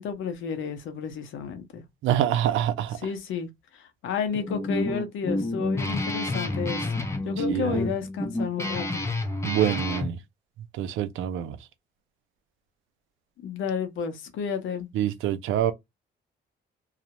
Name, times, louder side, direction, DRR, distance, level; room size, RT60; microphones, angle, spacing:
voice 1, 0.0-1.8 3.0-3.5 3.7-9.0 13.4-14.9, left 6 dB, 80° left, 0.8 m, -31 dB
voice 2, 2.0-3.0 7.5-7.9 9.4-10.2 10.7-11.6 14.9-15.7, right 11 dB, 85° right, 0.5 m, -26 dB
Guitar, 4.3-10.1, left 2 dB, 15° left, 0.5 m, -29 dB
2.4 x 2.0 x 2.8 m
cardioid pair, 90°, 20 cm